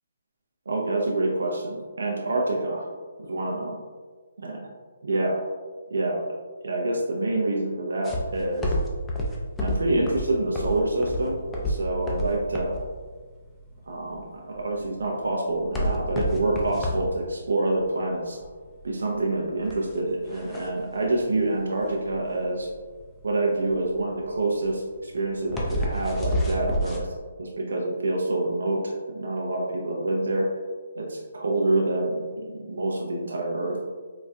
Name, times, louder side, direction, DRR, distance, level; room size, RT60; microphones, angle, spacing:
voice 1, 0.7-2.9 3.2-3.8 4.4-4.6 5.1-5.4 5.9-6.2 6.6-8.8 9.6-12.8 13.9-18.4 18.8-22.7 23.2-27.1 27.4-30.5 30.9-32.2 32.7-33.8, right 2 dB, 75° right, -1 dB, 0.5 m, -27 dB
sound 1, 8.0-27.0, equal, 10° left, 0.4 m, -30 dB
3.9 x 2.3 x 2.2 m, 1.4 s
hypercardioid pair, 145°, 0 cm